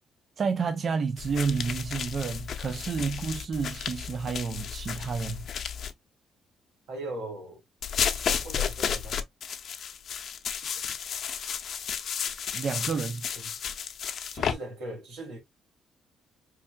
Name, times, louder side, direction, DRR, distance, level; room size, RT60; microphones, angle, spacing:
voice 1, 0.4-5.5 12.5-13.2, right 5 dB, 50° right, 0.5 m, -30 dB
sound 1, 1.2-5.9 7.8-14.5, left 8 dB, 60° left, 0.6 m, -33 dB
voice 2, 6.9-7.6 8.1-9.2 13.3-13.5 14.3-15.4, right 2 dB, 90° right, 2.7 m, -39 dB
4.4 x 3.5 x 2.2 m
cardioid pair, 90°, 0 cm